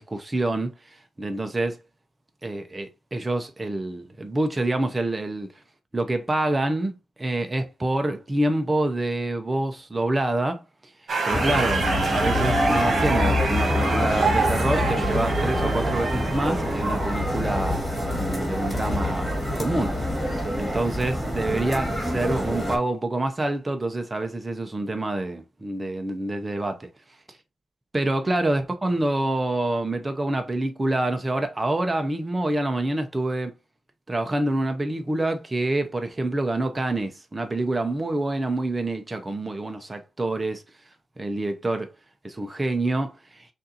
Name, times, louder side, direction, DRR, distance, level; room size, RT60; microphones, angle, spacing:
voice 1, 0.0-1.8 2.4-5.5 5.9-6.9 7.2-10.6 11.2-17.8 18.1-19.3 19.6-20.0 20.6-26.9 27.9-33.5 34.1-40.6 41.2-41.9 42.2-43.5, right 2 dB, 20° right, 0.7 m, -27 dB
sound 1, 11.1-17.2, right 3 dB, 55° right, 1.5 m, -26 dB
sound 2, 11.3-22.8, left 1 dB, 5° left, 2.2 m, -26 dB
6.4 x 2.6 x 2.8 m
cardioid pair, 100°, 0 cm